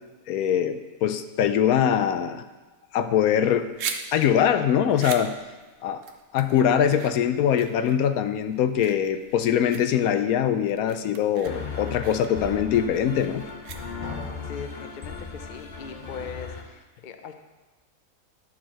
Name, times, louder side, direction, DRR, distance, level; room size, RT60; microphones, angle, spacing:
voice 1, 0.3-2.4 2.9-3.7 4.1-5.3 5.8-6.0 6.3-13.5, left 9 dB, 75° left, 9 dB, 1.0 m, -22 dB
sound 1, 3.4-14.3, right 6 dB, 60° right, 1.0 m, -40 dB
sound 2, 11.4-16.6, left 5 dB, 35° left, 0.9 m, -36 dB
voice 2, 14.4-17.3, left 6 dB, 55° left, 7 dB, 0.5 m, -40 dB
11.0 x 4.5 x 6.3 m, 1.2 s
omnidirectional pair, 1.6 m